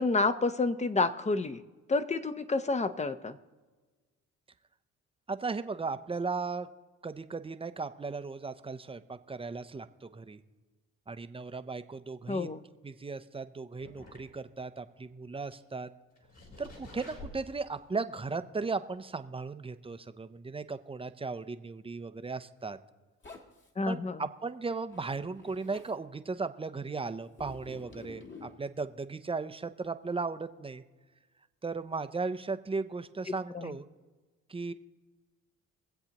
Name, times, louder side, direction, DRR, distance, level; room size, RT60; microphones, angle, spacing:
voice 1, 0.0-1.6 1.9-3.4 12.3-12.6 23.8-24.2 33.5-33.8, left 3 dB, 25° left, 11 dB, 0.7 m, -29 dB
voice 2, 5.3-6.7 7.0-10.4 11.1-12.5 12.8-15.9 16.6-22.8 23.9-30.8 31.6-33.9 34.5-34.7, right 4 dB, 20° right, 11 dB, 0.6 m, -36 dB
sound 1, 13.8-14.7 15.0-15.1 15.5-15.6 16.2-17.9 18.3-18.4 18.9-19.0, left 2 dB, 60° left, 3.5 m, -49 dB
Zipper (clothing), 23.2-23.7 24.9-25.9 27.3-28.6, left 3 dB, 40° left, 1.7 m, -49 dB
23.5 x 8.0 x 2.9 m, 1.3 s
cardioid pair, 90°, 30 cm